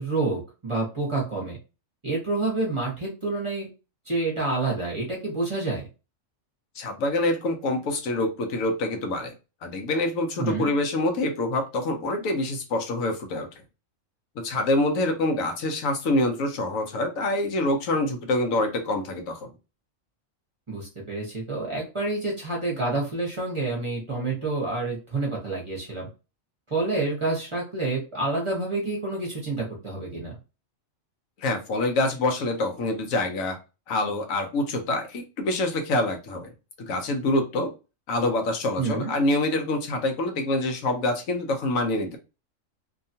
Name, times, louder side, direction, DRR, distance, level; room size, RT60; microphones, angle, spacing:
voice 1, 0.0-1.6 2.0-3.7 4.1-5.9 10.4-10.7 20.7-26.1 26.7-30.4 38.8-39.1, right 3 dB, 25° right, -2 dB, 0.8 m, -28 dB
voice 2, 6.8-9.3 9.6-13.5 14.4-19.5 31.4-33.6 33.9-36.5 36.8-37.7 38.1-42.2, left 2 dB, 80° left, 5 dB, 1.1 m, -26 dB
2.8 x 2.3 x 2.7 m, 0.29 s
omnidirectional pair, 1.4 m